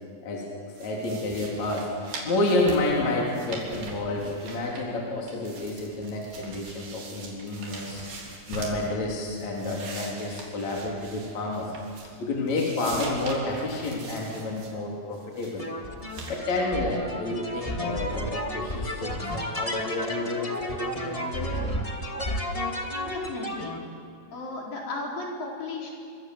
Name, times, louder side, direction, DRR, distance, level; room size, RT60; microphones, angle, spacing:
sound 1, 0.7-5.0 5.3-8.9 9.3-12.2 12.5-14.7 15.1-15.6 16.1-16.4, right 3 dB, 70° right, 5.3 m, -42 dB
voice 1, 0.8-11.8 12.2-15.6 16.3-21.8, left 2 dB, 50° left, -2 dB, 4.4 m, -30 dB
sound 2, 15.6-23.8, left 1 dB, 15° left, 1.1 m, -32 dB
voice 2, 23.0-23.8 24.3-25.9, left 3 dB, 65° left, -1 dB, 5.9 m, -35 dB
27.0 x 25.0 x 7.9 m, 2.3 s
omnidirectional pair, 4.4 m